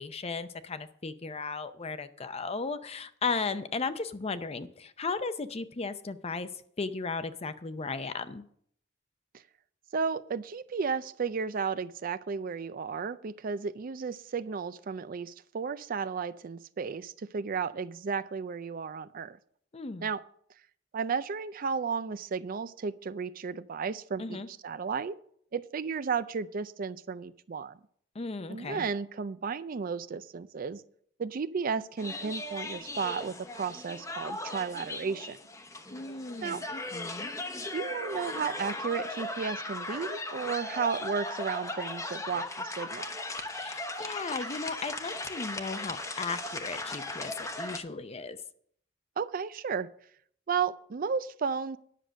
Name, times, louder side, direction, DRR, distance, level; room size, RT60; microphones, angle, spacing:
voice 1, 0.0-6.5 6.8-8.4 19.7-20.1 24.2-24.5 28.1-28.9 35.9-37.3 43.5-48.4, left 4 dB, 35° left, 11 dB, 0.6 m, -36 dB
voice 2, 9.9-19.4 20.0-20.2 20.9-25.2 25.5-27.8 28.5-30.8 31.2-35.4 36.4-36.6 37.7-43.2 49.2-49.9 50.5-51.8, right 5 dB, 50° right, 15 dB, 0.4 m, -33 dB
sound 1, 32.0-47.8, left 2 dB, 15° left, 0.9 m, -38 dB
10.0 x 6.6 x 6.2 m, 0.63 s
head